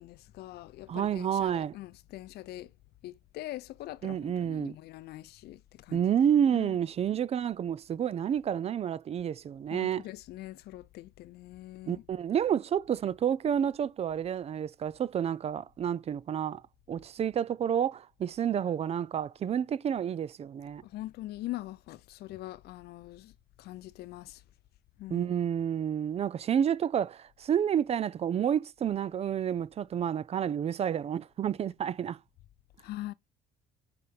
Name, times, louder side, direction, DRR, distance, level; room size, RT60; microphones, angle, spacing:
voice 1, 0.0-2.7 3.0-6.1 6.5-6.7 9.7-12.0 20.8-23.3 23.6-24.4 25.0-25.3 32.8-33.1, left 16 dB, 70° left, 0.6 m, -43 dB
voice 2, 0.9-1.7 4.0-4.8 5.9-10.0 11.9-16.6 16.9-20.8 25.1-32.2, right 9 dB, 40° right, 0.4 m, -29 dB
6.6 x 4.1 x 5.1 m
cardioid pair, 110°, 17 cm